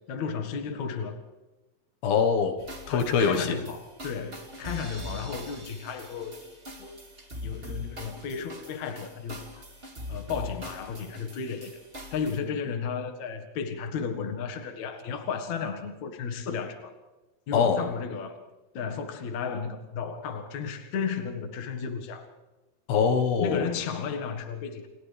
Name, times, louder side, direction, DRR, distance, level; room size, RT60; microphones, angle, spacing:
voice 1, 0.1-1.2 2.9-6.4 6.8-6.9 7.4-9.5 10.1-11.8 12.1-16.9 17.5-18.4 18.7-22.3 23.4-24.9, left 6 dB, 55° left, 5 dB, 2.7 m, -33 dB
voice 2, 2.0-2.6 2.9-3.6 17.5-17.8 22.9-23.7, left 6 dB, 80° left, 5 dB, 3.3 m, -23 dB
sound 1, 2.6-12.4, left 1 dB, 20° right, 2.2 m, -42 dB
29.5 x 28.5 x 3.4 m, 1.1 s
omnidirectional pair, 4.3 m